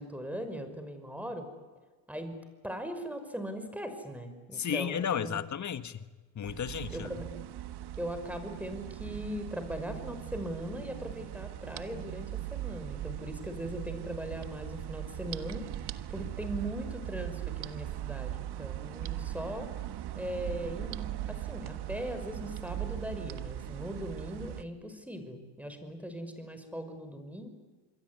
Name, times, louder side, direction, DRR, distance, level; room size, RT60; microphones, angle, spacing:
voice 1, 0.0-1.5 2.1-2.4 2.6-5.4 6.9-7.3 8.0-15.8 16.1-19.7 20.2-27.5, equal, 5° right, 8 dB, 5.9 m, -39 dB
voice 2, 4.5-6.1 6.4-7.1, left 8 dB, 40° left, 12 dB, 1.7 m, -33 dB
sound 1, 6.4-24.6, right 13 dB, 60° right, 1.5 m, -39 dB
27.5 x 22.0 x 9.8 m, 1.3 s
supercardioid pair, 85°, 44 cm